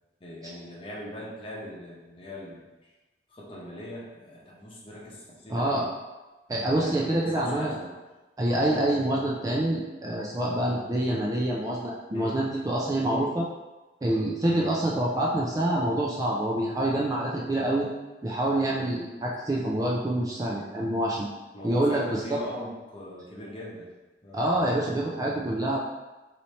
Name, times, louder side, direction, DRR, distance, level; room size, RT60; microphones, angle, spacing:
voice 1, 0.2-2.6 3.3-5.9 6.5-8.0 12.1-12.3 18.7-18.9 21.5-23.9 24.2-24.4, left 1 dB, 30° left, -5 dB, 0.9 m, -40 dB
voice 2, 5.5-5.9 6.5-7.7 8.4-13.5 14.0-17.9 18.2-21.3 21.6-22.4 24.3-25.8, right 1 dB, 20° right, -4 dB, 0.4 m, -26 dB
3.2 x 2.7 x 4.1 m, 1.1 s
head